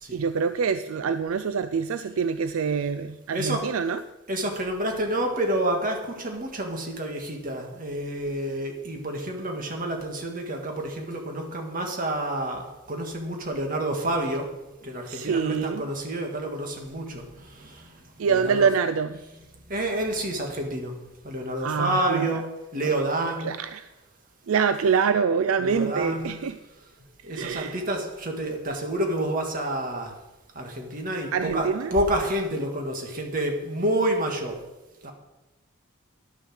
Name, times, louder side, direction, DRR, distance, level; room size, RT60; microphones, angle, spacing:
voice 1, 0.1-4.0 15.1-15.8 18.2-19.2 21.6-22.3 23.4-23.9 24.5-26.6 27.3-27.8 31.3-31.9, right 6 dB, 70° right, 11 dB, 0.4 m, -25 dB
voice 2, 3.3-3.7 4.3-14.5 14.8-18.7 19.1-19.4 19.7-20.9 21.2-22.5 22.7-23.6 25.6-26.4 27.2-30.1 30.5-34.6 35.0-35.1, right 1 dB, 40° right, 2 dB, 1.8 m, -29 dB
11.0 x 6.3 x 6.4 m, 1.0 s
head